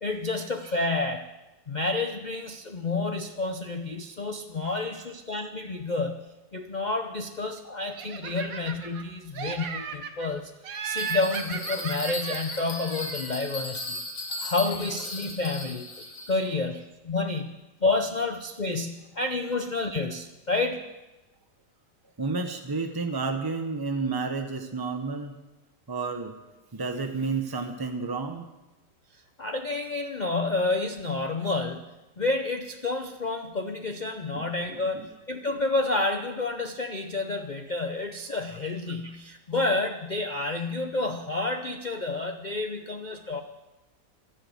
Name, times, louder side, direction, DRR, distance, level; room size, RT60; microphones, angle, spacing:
voice 1, 0.0-1.3 1.7-6.2 6.5-10.5 10.8-14.0 14.4-20.8 29.4-43.4, left 3 dB, 85° left, 6 dB, 0.4 m, -29 dB
Laughter, 8.0-9.0 9.3-10.3 10.6-13.4, right 6 dB, 85° right, 1.8 m, -36 dB
Bell, 11.0-16.5, left 2 dB, 60° left, 2.4 m, -37 dB
voice 2, 22.2-25.3 25.9-26.3 26.7-28.5 34.3-34.5, right 4 dB, 25° right, 5 dB, 0.5 m, -31 dB
12.0 x 10.5 x 8.2 m, 1.1 s
omnidirectional pair, 1.9 m